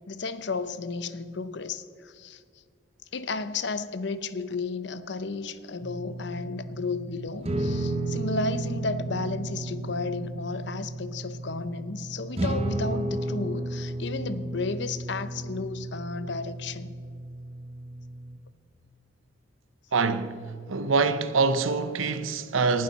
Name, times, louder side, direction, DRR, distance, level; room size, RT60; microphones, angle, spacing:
voice 1, 0.1-2.4 3.1-16.9, left 3 dB, 60° left, 0.6 m, -33 dB
sound 1, 5.8-18.4, right 2 dB, 30° right, 0.9 m, -33 dB
voice 2, 19.9-20.4 20.7-22.8, right 4 dB, 85° right, 0.7 m, -25 dB
19.0 x 11.5 x 4.1 m
head